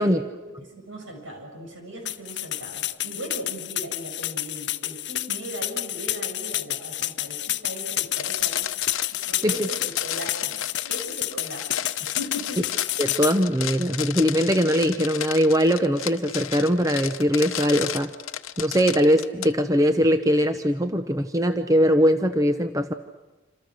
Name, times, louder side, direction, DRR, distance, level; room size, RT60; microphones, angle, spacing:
voice 1, 0.0-8.7 9.1-12.6, equal, 70° right, 2 dB, 7.8 m, -38 dB
sound 1, 2.1-13.4, left 14 dB, 55° left, 0.8 m, -29 dB
sound 2, 8.1-19.5, left 10 dB, 90° left, 0.9 m, -33 dB
voice 2, 13.0-18.1 18.6-22.9, equal, 15° right, 8 dB, 0.8 m, -21 dB
27.5 x 27.0 x 6.5 m, 1.1 s
head